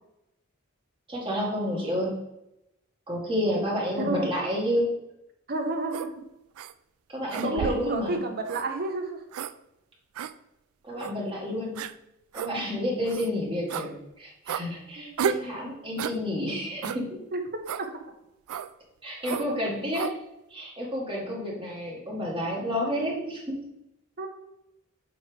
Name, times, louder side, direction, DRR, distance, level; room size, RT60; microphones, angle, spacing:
voice 1, 1.1-2.1 3.1-4.9 7.1-8.2 10.8-11.8 12.3-17.2 19.0-20.2 20.5-23.6, equal, 25° right, -3 dB, 1.8 m, -30 dB
voice 2, 4.0-4.3 5.5-6.2 7.4-9.2 15.0-15.1 17.3-17.4 17.8-17.9 24.2-24.3, right 2 dB, 50° right, 5 dB, 1.0 m, -30 dB
sound 1, 5.9-6.1 6.6-6.7 7.3-7.9 8.5-8.7 9.3-9.5 10.2-10.3 11.0-11.1 11.8-11.9 12.3-12.5 13.1-13.3 13.7-13.9 14.5-14.7 15.2-15.5 16.0-16.2 16.8-17.0 17.7-17.9 18.5-18.7 19.2-19.5 19.9-20.1, right 8 dB, 85° right, 0.4 m, -32 dB
7.0 x 4.9 x 3.3 m, 0.89 s
head